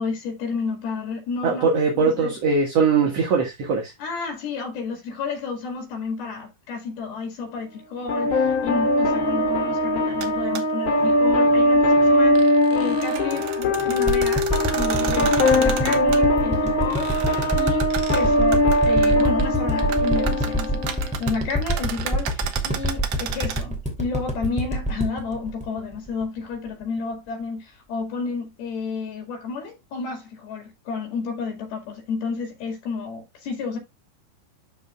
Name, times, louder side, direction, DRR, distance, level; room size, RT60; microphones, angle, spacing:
voice 1, 0.0-1.7 2.0-2.4 4.0-17.1 17.5-33.8, left 4 dB, 70° left, 3.9 m, -31 dB
voice 2, 1.4-3.9, right 5 dB, 50° right, 2.1 m, -21 dB
sound 1, 8.1-21.1, left 1 dB, 55° left, 3.1 m, -21 dB
sound 2, 10.2-10.3 10.5-10.6 12.1-16.2 16.9-19.4 19.7-23.6, right 9 dB, 65° right, 2.2 m, -33 dB
sound 3, 14.1-26.4 26.8-26.9, equal, 5° right, 1.7 m, -26 dB
12.5 x 5.0 x 2.3 m
omnidirectional pair, 4.6 m